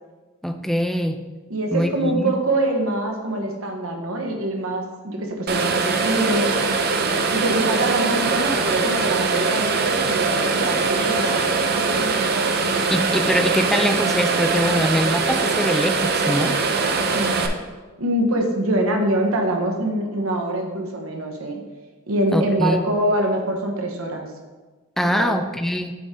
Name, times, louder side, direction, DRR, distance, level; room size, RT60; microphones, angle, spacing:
voice 1, 0.4-1.2 1.7-2.3 12.9-16.6 22.3-22.8 25.0-25.9, equal, ahead, 5 dB, 0.4 m, -23 dB
voice 2, 1.5-6.5 7.3-12.2 17.1-17.5 18.0-21.6 22.1-24.3 25.2-25.3, right 1 dB, 90° right, 2 dB, 1.1 m, -24 dB
sound 1, 5.5-17.5, right 4 dB, 50° right, 0.6 m, -22 dB
8.4 x 3.7 x 4.2 m, 1.2 s
head